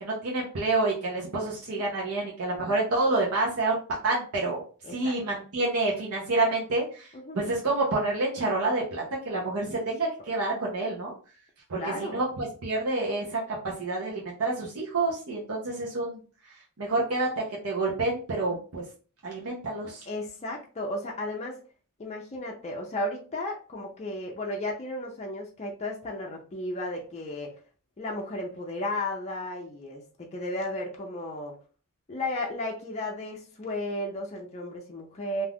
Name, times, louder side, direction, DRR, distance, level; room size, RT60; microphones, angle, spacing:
voice 1, 0.0-4.6 4.9-11.1 11.7-16.2 16.8-18.8 19.2-20.0, right 2 dB, 75° right, -3 dB, 0.7 m, -28 dB
voice 2, 4.8-5.2 7.1-7.4 11.7-12.2 20.1-21.6 22.0-27.6 28.0-31.5 32.1-35.5, left 1 dB, 30° left, -1 dB, 0.5 m, -34 dB
2.5 x 2.4 x 3.4 m, 0.38 s
head